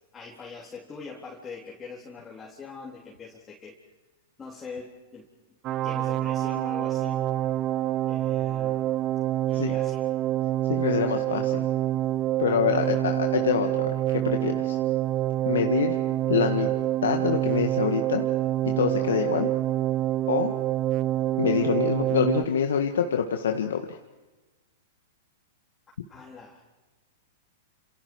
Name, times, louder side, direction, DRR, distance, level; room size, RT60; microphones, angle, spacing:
voice 1, 0.1-3.8 4.4-5.2 5.8-7.3 8.0-9.2 9.5-10.1 12.7-13.0 26.1-26.6, left 4 dB, 15° left, -4 dB, 3.8 m, -43 dB
sound 1, 5.6-22.4, right 13 dB, 35° right, 0.7 m, -26 dB
voice 2, 10.7-11.6 12.4-14.8 15.5-16.0 16.3-16.7 17.0-18.2 18.7-19.5 20.3-20.5 21.4-24.0, left 7 dB, 80° left, 5 dB, 1.7 m, -26 dB
30.0 x 28.5 x 4.8 m, 1.2 s
hypercardioid pair, 120°, 0 cm